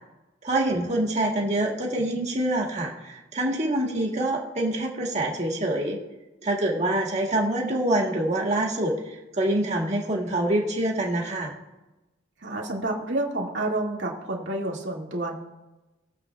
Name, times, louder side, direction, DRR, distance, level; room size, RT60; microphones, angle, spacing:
voice 1, 0.4-6.0 6.4-11.5, right 1 dB, 40° right, -1 dB, 1.9 m, -26 dB
voice 2, 12.4-15.3, right 2 dB, 75° right, -2 dB, 2.2 m, -29 dB
22.5 x 7.6 x 2.4 m, 1.0 s
head